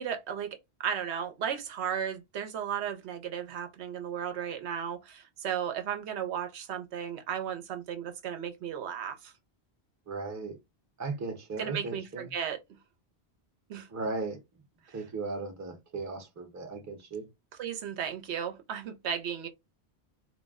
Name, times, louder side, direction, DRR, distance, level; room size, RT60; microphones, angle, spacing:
voice 1, 0.0-9.3 11.6-12.6 13.7-13.9 14.9-15.0 17.6-19.5, right 8 dB, 85° right, 0.9 m, -35 dB
voice 2, 10.1-10.5 11.0-12.3 13.9-14.4 14.9-17.3, right 3 dB, 20° right, 0.5 m, -36 dB
2.3 x 2.1 x 3.4 m
omnidirectional pair, 1.1 m